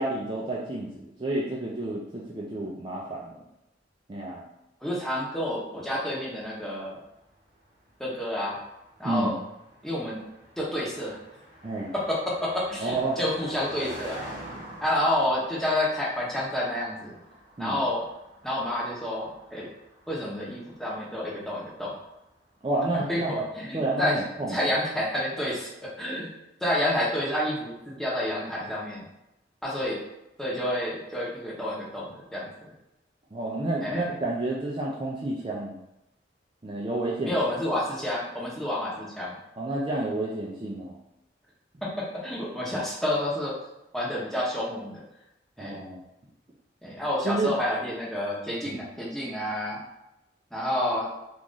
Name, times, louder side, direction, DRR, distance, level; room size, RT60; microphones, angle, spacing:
voice 1, 0.0-3.4 4.1-4.4 9.0-9.4 11.6-11.9 12.8-13.2 17.6-17.8 22.6-23.3 23.7-24.6 33.3-35.8 36.6-37.4 39.6-40.9 45.6-46.0 47.2-47.5, right 2 dB, 25° right, -4 dB, 0.4 m, -30 dB
voice 2, 4.8-7.0 8.0-8.6 9.0-9.4 9.8-10.2 10.6-11.2 11.9-14.3 14.8-17.2 17.6-18.1 18.4-19.7 20.1-21.9 23.1-24.2 24.5-26.3 26.6-29.1 29.6-30.0 30.4-32.7 33.8-34.1 37.2-39.4 41.8-43.6 43.9-45.0 45.6-45.8 46.8-49.8 50.5-51.1, left 1 dB, ahead, -5 dB, 0.8 m, -29 dB
Car passing by, 6.1-22.3, right 1 dB, 45° right, 0.8 m, -47 dB
3.0 x 2.4 x 3.8 m, 0.90 s
head